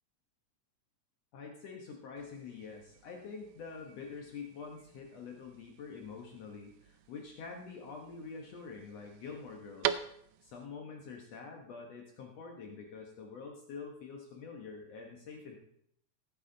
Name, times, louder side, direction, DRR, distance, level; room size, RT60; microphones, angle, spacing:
voice 1, 1.3-10.0 10.4-15.6, left 5 dB, 65° left, 1 dB, 2.2 m, -46 dB
sound 1, 2.2-10.7, right 11 dB, 80° right, 1.6 m, -43 dB
15.5 x 9.1 x 3.8 m, 0.73 s
omnidirectional pair, 3.4 m